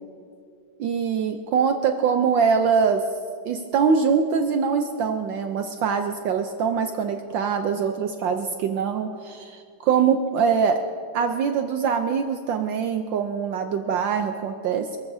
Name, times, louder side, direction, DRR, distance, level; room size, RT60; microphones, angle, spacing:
voice 1, 0.8-3.0 3.4-10.8 11.1-15.0, right 6 dB, 70° right, 5 dB, 1.4 m, -23 dB
27.0 x 14.0 x 2.7 m, 2.4 s
omnidirectional pair, 2.2 m